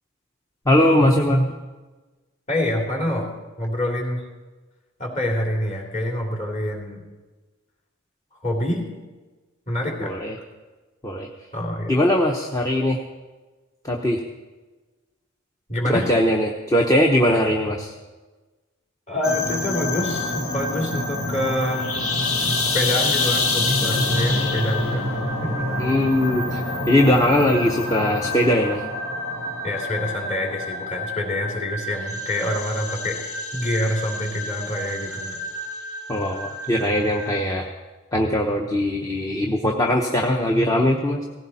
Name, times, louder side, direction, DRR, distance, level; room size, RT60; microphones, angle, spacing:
voice 1, 0.7-1.5 10.0-10.4 11.0-11.3 11.9-13.0 13.8-14.2 15.9-17.9 25.8-28.9 36.1-37.7 38.1-41.3, left 1 dB, 15° left, 1 dB, 0.9 m, -20 dB
voice 2, 2.5-3.3 3.6-4.3 5.0-7.0 8.4-8.9 9.7-10.1 11.5-11.9 15.7-16.1 19.1-21.9 22.5-25.0 25.4-25.7 29.6-33.2 33.5-35.4, left 1 dB, 35° left, 0 dB, 3.1 m, -26 dB
sound 1, 19.2-37.4, left 2 dB, 70° left, 1.9 m, -27 dB
18.0 x 15.5 x 4.2 m, 1.2 s
head